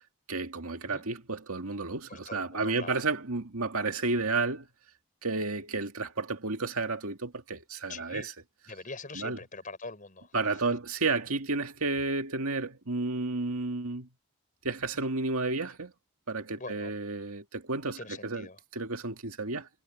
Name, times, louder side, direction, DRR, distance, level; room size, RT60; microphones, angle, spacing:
voice 1, 0.3-4.7 5.2-8.2 9.2-9.4 10.3-14.1 14.6-15.9 16.3-18.5 18.8-19.7, right 3 dB, 75° right, 2.1 m, -31 dB
voice 2, 2.1-3.0 7.9-8.3 8.7-10.6 14.9-15.1 16.6-16.9 18.0-18.6, left 3 dB, 35° left, 6.2 m, -43 dB
head